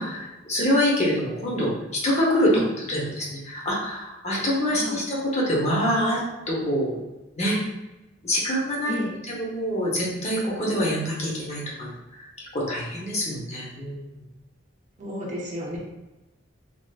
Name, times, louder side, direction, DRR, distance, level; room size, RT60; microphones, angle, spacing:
voice 1, 0.0-2.5 2.9-6.2 6.5-7.0 7.4-7.6 8.2-11.9 12.2-12.3 12.5-14.0, equal, 35° left, -4 dB, 0.7 m, -25 dB
voice 2, 4.7-5.0 8.9-9.2 15.0-15.8, equal, 35° right, -4 dB, 0.6 m, -31 dB
3.3 x 2.4 x 2.3 m, 1.0 s
head